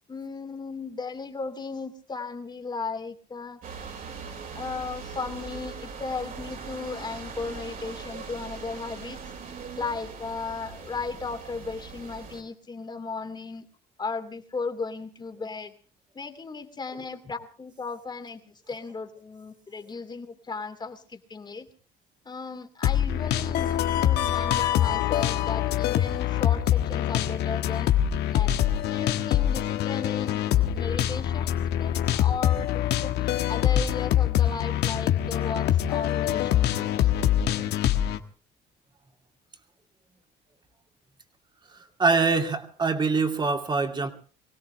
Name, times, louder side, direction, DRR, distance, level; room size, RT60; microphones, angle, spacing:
voice 1, 0.1-3.6 4.5-9.3 9.8-13.7 14.0-15.7 16.1-21.7 22.2-27.9 28.3-28.6 28.9-37.1, left 4 dB, 25° left, 7 dB, 2.7 m, -36 dB
sound 1, 3.6-12.4, right 5 dB, 55° right, 5.0 m, -40 dB
sound 2, 22.8-38.2, left 11 dB, 80° left, 1.6 m, -24 dB
voice 2, 41.7-44.1, right 4 dB, 25° right, 5 dB, 2.8 m, -24 dB
24.5 x 17.0 x 3.4 m, 0.39 s
cardioid pair, 110°, 17 cm